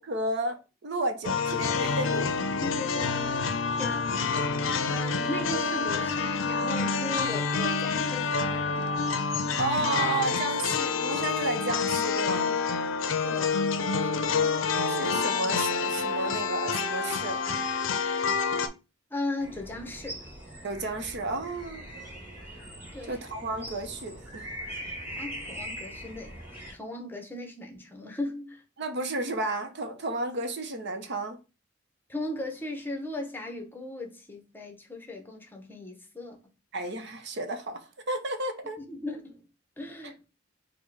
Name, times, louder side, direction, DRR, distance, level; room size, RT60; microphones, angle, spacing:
voice 1, 0.0-2.3 9.6-12.6 14.3-17.4 20.6-21.9 23.1-24.5 28.8-31.4 36.7-38.8, right 2 dB, 60° right, 0.7 m, -32 dB
sound 1, 1.2-18.7, left 5 dB, 85° left, 0.5 m, -28 dB
voice 2, 2.6-3.5 3.8-4.4 4.9-9.0 13.2-14.5 19.1-20.3 22.9-23.2 25.2-26.3 26.7-28.6 32.1-36.4 38.8-39.5 39.8-40.3, left 2 dB, 10° left, 0.8 m, -37 dB
sound 2, 19.4-26.7, equal, 15° right, 2.2 m, -41 dB
4.4 x 2.2 x 4.6 m
head